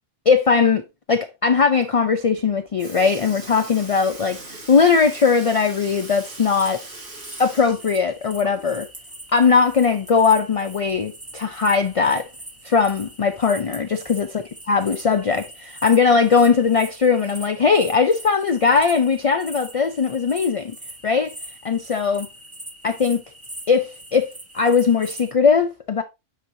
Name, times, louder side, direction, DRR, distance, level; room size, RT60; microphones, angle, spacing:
voice 1, 0.3-0.8 1.1-6.8 7.4-8.9 9.3-12.3 12.6-14.3 14.7-20.8 21.0-21.3 21.6-22.3 22.8-23.2 23.7-26.0, left 5 dB, 55° left, 0.4 m, -19 dB
Sink (filling or washing) / Liquid, 2.4-2.5 2.8-8.9 9.2-9.3 10.9-11.0 11.9-12.0 12.8-13.1 13.9-14.0, right 2 dB, 75° right, 2.8 m, -40 dB
sound 1, 5.8-25.3, right 1 dB, 15° right, 0.9 m, -42 dB
9.0 x 4.7 x 2.7 m
omnidirectional pair, 1.3 m